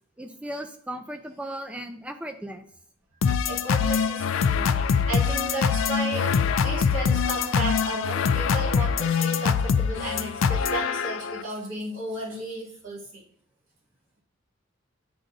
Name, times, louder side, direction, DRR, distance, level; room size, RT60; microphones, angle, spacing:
voice 1, 0.2-2.6, right 1 dB, 5° right, 6 dB, 0.4 m, -36 dB
sound 1, 3.2-11.4, left 6 dB, 75° left, 0.3 m, -24 dB
voice 2, 3.3-6.3 6.6-13.2, right 2 dB, 85° right, -6 dB, 2.3 m, -34 dB
9.3 x 3.9 x 2.6 m, 0.62 s
head